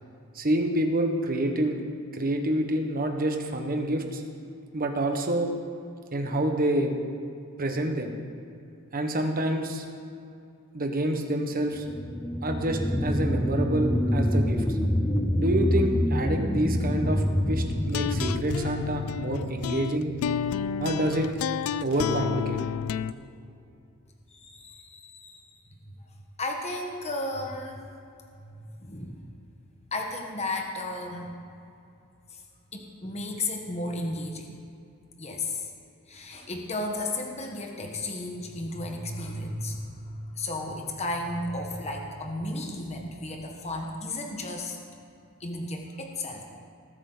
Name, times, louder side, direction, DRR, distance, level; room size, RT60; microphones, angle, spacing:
voice 1, 0.3-1.8 2.1-4.2 4.7-5.5 6.1-6.9 7.6-8.1 8.9-9.8 10.7-11.8 12.4-14.8 15.4-20.1 20.8-21.3 21.8-22.6, right 1 dB, 40° right, 4 dB, 1.3 m, -27 dB
sound 1, 11.7-20.8 21.2-21.3, equal, 10° left, 0.6 m, -27 dB
sound 2, 17.8-23.1, left 7 dB, 70° left, 0.3 m, -31 dB
voice 2, 24.3-25.6 26.4-27.8 28.4-29.1 29.9-31.3 32.3-32.4 32.7-34.6 35.2-35.7 36.1-44.8 45.4-46.5, left 2 dB, 30° left, 2 dB, 1.3 m, -34 dB
19.5 x 8.5 x 4.0 m, 2.6 s
head